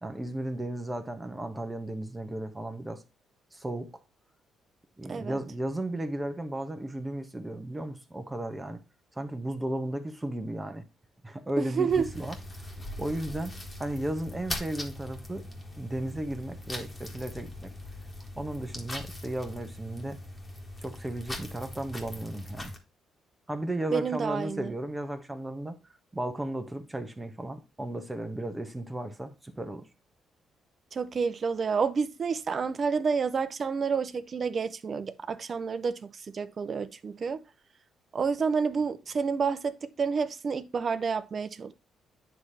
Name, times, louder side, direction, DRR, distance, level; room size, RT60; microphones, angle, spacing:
voice 1, 0.0-3.0 3.5-3.9 5.0-8.8 9.1-10.8 11.2-12.7 13.0-15.5 15.8-17.7 18.3-20.2 20.8-22.7 23.5-25.8 26.1-29.9, right 1 dB, 15° right, 1.3 m, -35 dB
voice 2, 11.6-12.1 23.9-24.7 30.9-37.4 38.1-41.7, right 5 dB, 45° right, 0.7 m, -29 dB
sound 1, 11.9-22.8, left 1 dB, 20° left, 1.8 m, -41 dB
9.6 x 3.3 x 4.1 m
cardioid pair, 90°, 0 cm